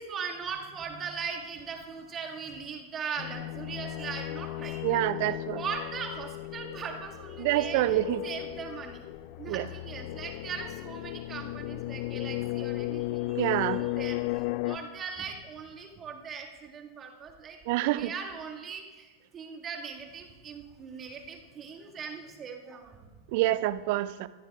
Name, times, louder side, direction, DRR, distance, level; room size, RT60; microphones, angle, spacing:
voice 1, 0.0-5.0 5.5-9.1 9.4-17.6 17.9-23.1, right 6 dB, 25° right, 1 dB, 1.8 m, -39 dB
sound 1, 3.2-14.8, left 18 dB, 45° left, 0.4 m, -35 dB
voice 2, 4.8-5.6 7.4-8.2 9.5-9.7 13.3-13.9 17.7-18.1 23.3-24.3, right 16 dB, 50° right, 17 dB, 0.4 m, -27 dB
21.5 x 13.5 x 2.3 m, 1.3 s
figure-of-eight pair, 90°, 0 cm